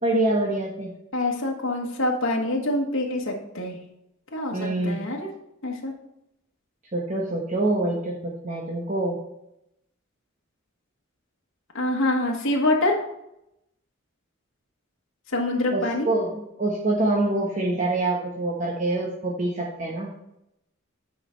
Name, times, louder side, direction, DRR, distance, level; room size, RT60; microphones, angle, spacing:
voice 1, 0.0-0.9 4.5-5.0 6.9-9.2 15.7-20.1, right 2 dB, 35° right, -2 dB, 1.1 m, -25 dB
voice 2, 1.1-3.8 4.3-5.3 5.6-5.9 11.7-13.0 15.3-16.1, left 2 dB, 75° left, -1 dB, 1.4 m, -25 dB
9.1 x 4.9 x 4.5 m, 0.83 s
head